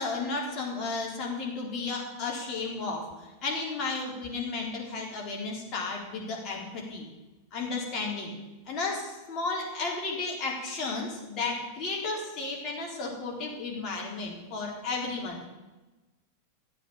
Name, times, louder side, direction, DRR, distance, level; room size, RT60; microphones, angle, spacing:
voice 1, 0.0-7.1 7.5-8.3 8.7-15.4, left 3 dB, 35° left, -2 dB, 4.0 m, -33 dB
14.0 x 8.6 x 7.3 m, 1.1 s
figure-of-eight pair, 90°, 0 cm